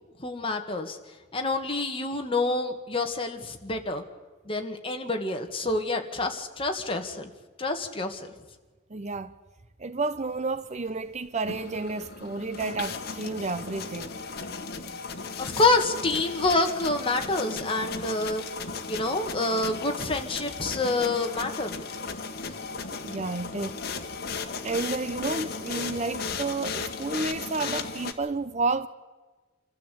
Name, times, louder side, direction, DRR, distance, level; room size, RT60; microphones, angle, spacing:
voice 1, 0.2-1.0 1.3-4.0 4.5-7.3 7.6-8.3 15.4-18.4 18.9-21.8, left 2 dB, 30° left, 2.2 m, -27 dB
voice 2, 8.9-9.3 9.8-14.1 23.0-23.8 24.6-28.9, right 3 dB, 35° right, 0.7 m, -31 dB
sound 1, 11.3-28.1, left 4 dB, 55° left, 1.7 m, -36 dB
26.5 x 14.0 x 8.6 m
head